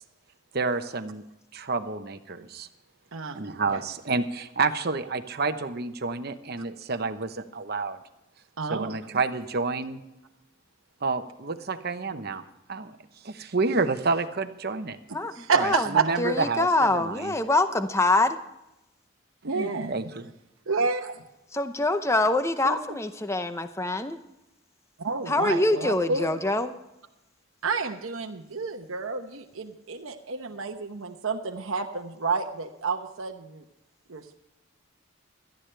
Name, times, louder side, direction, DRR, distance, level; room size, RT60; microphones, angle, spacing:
voice 1, 0.5-1.2 1.5-2.7 3.3-8.0 8.7-10.0 11.0-12.4 12.7-12.9 13.2-15.0 15.5-17.3 19.5-20.3, right 4 dB, 50° right, 9 dB, 0.9 m, -29 dB
voice 2, 8.6-8.9 15.3-16.1 19.4-20.1 20.7-21.2 22.6-22.8 25.0-26.3 27.6-33.6 34.1-34.4, right 4 dB, 80° right, 4 dB, 1.0 m, -29 dB
voice 3, 15.1-15.9 16.2-18.4 21.5-24.2 25.3-26.7, left 2 dB, 15° left, 9 dB, 0.7 m, -25 dB
18.0 x 13.0 x 3.3 m, 0.90 s
head